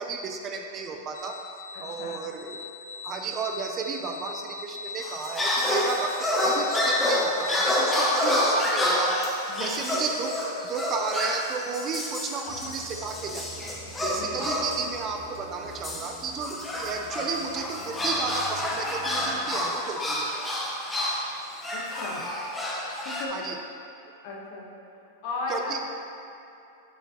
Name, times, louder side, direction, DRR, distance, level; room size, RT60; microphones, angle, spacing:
voice 1, 0.0-1.4 1.8-2.6 3.0-9.2 9.6-10.4 10.6-13.6 14.0-20.3 22.1-22.3 23.3-23.6 25.5-25.8, right 5 dB, 30° right, 3 dB, 0.4 m, -33 dB
sound 1, 1.1-8.2, left 5 dB, 85° left, 0.4 m, -40 dB
voice 2, 1.7-2.2 9.5-10.0 14.2-14.5 21.7-22.2 23.0-23.4 24.2-24.7 25.2-25.7, left 3 dB, 50° left, -3 dB, 1.2 m, -36 dB
sound 2, 5.0-14.9 15.8-23.3, left 1 dB, 10° left, 0.7 m, -28 dB
sound 3, 12.5-19.6, left 1 dB, 35° left, 1.3 m, -47 dB
6.3 x 5.0 x 3.0 m, 2.9 s
hypercardioid pair, 135°, 0 cm